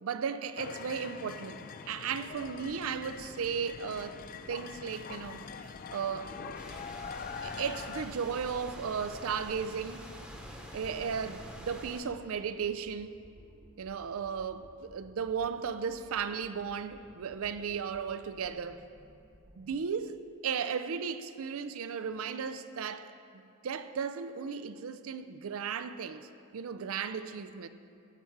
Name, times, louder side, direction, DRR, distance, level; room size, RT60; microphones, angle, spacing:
voice 1, 0.0-4.2 4.5-5.5 5.9-6.3 7.4-10.1 10.7-13.2 13.8-18.8 19.6-20.2 20.4-26.3 26.5-27.7, right 6 dB, 65° right, 0.4 m, -35 dB
sound 1, 0.6-8.1, left 6 dB, 40° left, 0.3 m, -44 dB
sound 2, 2.3-19.8, equal, 45° right, 1.4 m, -58 dB
sound 3, 6.5-12.0, equal, 5° right, 0.9 m, -46 dB
15.0 x 5.8 x 4.7 m
head